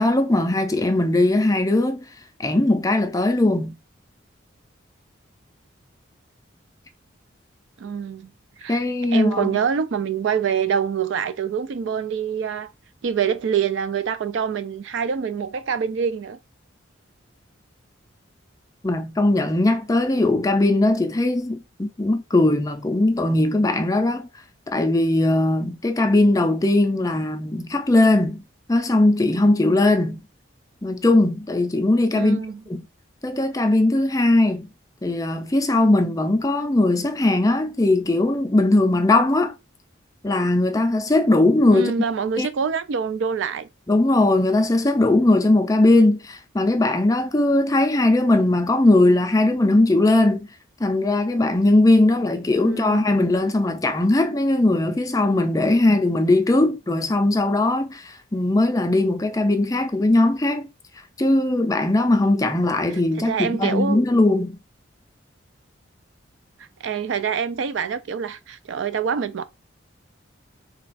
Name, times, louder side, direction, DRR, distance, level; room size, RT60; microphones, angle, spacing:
voice 1, 0.0-2.1 2.4-3.8 8.7-9.5 18.8-24.3 24.7-28.4 28.7-30.2 30.8-32.4 32.7-32.8 33.2-34.7 35.0-39.5 40.2-41.9 42.4-42.5 43.9-50.5 50.8-60.7 61.2-64.6, left 2 dB, 15° left, 0.4 m, -19 dB
voice 2, 7.8-8.3 8.6-8.8 9.1-12.7 13.0-16.4 32.1-32.6 41.7-43.7 52.6-53.1 63.3-64.0 66.8-69.4, right 7 dB, 70° right, 0.4 m, -25 dB
3.3 x 2.3 x 4.0 m
head